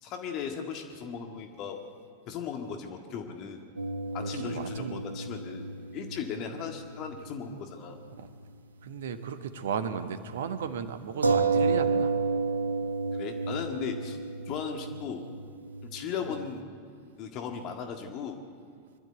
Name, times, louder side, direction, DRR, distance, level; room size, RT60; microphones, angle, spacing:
voice 1, 0.0-1.8 2.3-3.6 4.1-5.6 5.9-8.0 13.1-14.2 14.5-15.2 15.8-16.7 17.2-18.4, left 7 dB, 40° left, 4 dB, 1.7 m, -37 dB
sound 1, 3.8-7.6 7.9-8.0 11.2-16.4, right 4 dB, 80° right, 1.0 m, -31 dB
voice 2, 4.2-5.0 8.2-8.3 8.8-12.1, right 7 dB, 60° right, 10 dB, 1.3 m, -35 dB
24.0 x 12.0 x 9.2 m, 2.1 s
figure-of-eight pair, 90°, 0 cm